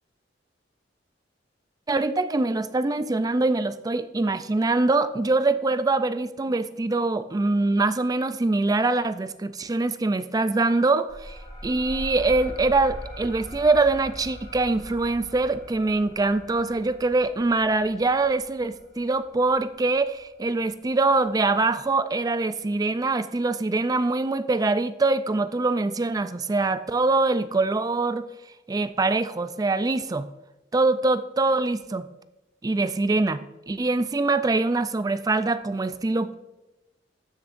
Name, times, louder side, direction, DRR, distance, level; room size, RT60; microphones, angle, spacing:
voice 1, 1.9-28.2 28.7-30.3 30.7-32.1 32.6-36.3, right 3 dB, 20° right, 12 dB, 0.4 m, -24 dB
sound 1, 11.1-20.3, equal, 25° left, 2.7 m, -41 dB
13.0 x 6.5 x 2.5 m, 1.0 s
head